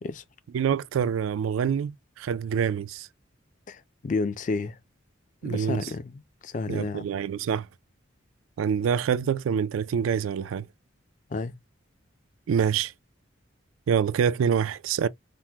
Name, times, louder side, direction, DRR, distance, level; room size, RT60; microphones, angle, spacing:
voice 1, 0.5-3.1 5.4-5.8 6.7-7.7 8.6-10.7 12.5-12.9 13.9-15.1, right 7 dB, 85° right, 0.3 m, -26 dB
voice 2, 3.7-4.8 5.4-7.1 11.3-11.6, left 3 dB, 40° left, 0.3 m, -31 dB
3.5 x 2.0 x 2.8 m
head